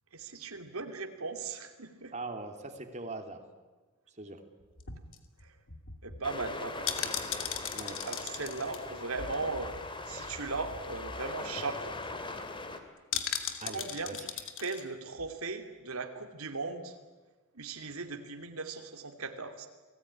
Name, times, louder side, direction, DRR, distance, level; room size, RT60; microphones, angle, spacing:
voice 1, 0.1-2.1 5.4-5.6 6.0-6.9 8.0-9.7 10.1-11.9 13.7-14.2 14.6-17.0 17.5-19.7, right 3 dB, 80° right, 6 dB, 2.7 m, -38 dB
voice 2, 2.1-3.4 4.2-4.4 7.7-8.0 13.6-14.3, right 2 dB, 35° right, 5 dB, 2.8 m, -41 dB
sound 1, 4.6-10.0 10.3-10.4 10.7-11.0 11.3-11.4 11.7-12.1 13.1-14.8 15.2-15.3, left 8 dB, 65° left, 2.8 m, -38 dB
sound 2, 6.2-12.8, left 2 dB, 25° left, 2.8 m, -41 dB
30.0 x 19.5 x 9.9 m, 1.3 s
head